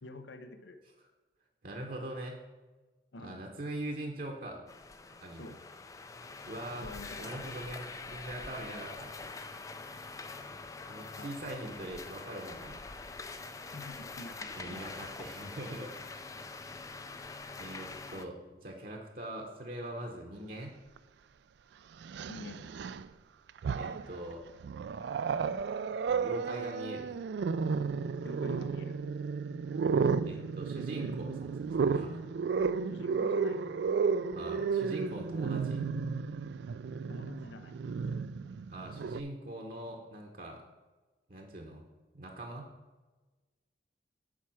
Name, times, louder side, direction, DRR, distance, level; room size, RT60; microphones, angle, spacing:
voice 1, 0.0-0.8 3.1-3.5 5.4-5.6 6.8-7.3 11.2-11.4 13.7-15.2 22.3-22.7 28.2-29.0 32.9-33.6 37.1-37.8, left 2 dB, 85° left, 8 dB, 0.6 m, -47 dB
voice 2, 1.6-2.4 3.2-4.6 5.2-5.6 6.4-6.9 7.2-9.1 10.9-13.1 14.6-16.1 17.6-20.8 23.8-24.4 26.1-27.2 30.2-32.2 34.4-35.9 38.7-40.6 41.3-41.8 42.1-42.7, right 1 dB, 50° right, 1 dB, 0.9 m, -42 dB
sound 1, 4.7-18.3, left 3 dB, 20° left, 0.3 m, -44 dB
Growling, 21.0-21.1 22.0-23.1 23.5-24.2 24.6-39.2, right 5 dB, 70° right, 0.3 m, -33 dB
7.3 x 4.7 x 6.1 m, 1.2 s
head